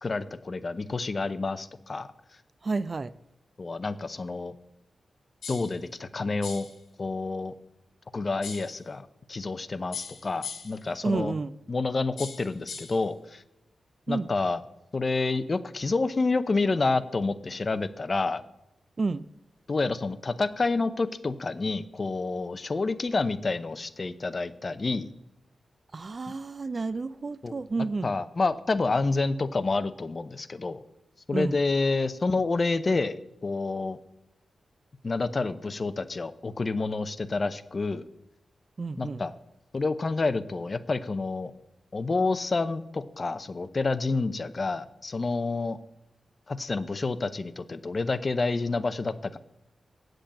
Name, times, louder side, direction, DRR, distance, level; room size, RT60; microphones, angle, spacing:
voice 1, 0.0-2.1 3.6-4.5 5.5-6.7 7.0-7.5 8.1-11.3 11.7-13.4 14.1-14.6 14.9-18.4 19.7-25.1 27.4-27.5 28.0-30.8 31.3-34.0 35.0-38.1 39.0-39.3 39.7-41.5 41.9-45.8 46.5-49.4, left 3 dB, 35° left, 0.6 m, -28 dB
voice 2, 2.6-3.1 11.0-11.5 14.1-14.3 19.0-19.2 25.9-28.1 31.3-31.6 38.8-39.2, right 3 dB, 35° right, 0.3 m, -30 dB
sound 1, 5.4-5.8 6.4-6.8 8.4-8.8 9.9-10.8 12.2-13.0, left 5 dB, 80° left, 2.5 m, -39 dB
8.6 x 7.8 x 7.6 m
wide cardioid pair, 120°, 0 cm